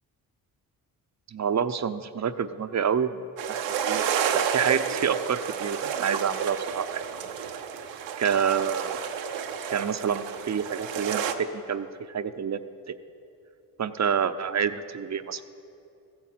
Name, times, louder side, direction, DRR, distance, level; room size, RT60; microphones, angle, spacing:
voice 1, 1.3-7.1 8.2-9.0 9.7-12.6 13.8-15.4, right 7 dB, 40° right, 11 dB, 0.8 m, -28 dB
sound 1, 3.4-11.3, right 8 dB, 85° right, 0.9 m, -30 dB
15.0 x 9.6 x 7.5 m, 2.7 s
supercardioid pair, 50°, 43 cm